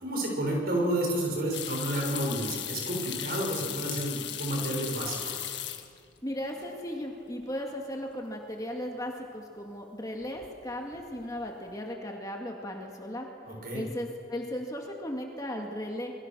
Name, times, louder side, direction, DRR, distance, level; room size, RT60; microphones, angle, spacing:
voice 1, 0.0-5.5 13.5-13.9, right 1 dB, 50° right, 0 dB, 6.3 m, -31 dB
sound 1, 1.5-6.2 6.5-7.1 7.4-7.5 10.2-10.6 10.9-11.4, left 11 dB, 65° left, 1.6 m, -37 dB
voice 2, 6.2-13.3 13.7-16.1, left 1 dB, 20° left, 1 dB, 2.1 m, -36 dB
27.0 x 22.0 x 6.3 m, 2.3 s
head